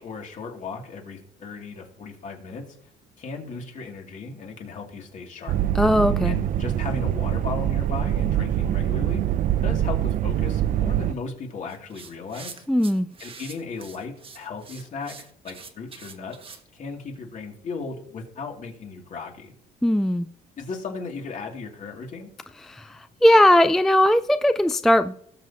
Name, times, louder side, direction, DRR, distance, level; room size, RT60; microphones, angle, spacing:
voice 1, 0.0-2.6 3.2-5.6 6.2-9.3 9.6-12.6 13.2-19.5 20.6-22.3, left 4 dB, 50° left, 1 dB, 2.8 m, -36 dB
sound 1, 5.5-11.1, right 12 dB, 55° right, 0.5 m, -24 dB
voice 2, 5.7-6.4 12.7-13.1 19.8-20.3 22.6-25.1, left 1 dB, ahead, 11 dB, 0.3 m, -19 dB
sound 2, 11.7-16.6, right 5 dB, 30° right, 1.3 m, -44 dB
18.5 x 7.1 x 2.9 m, 0.67 s
cardioid pair, 110°, 17 cm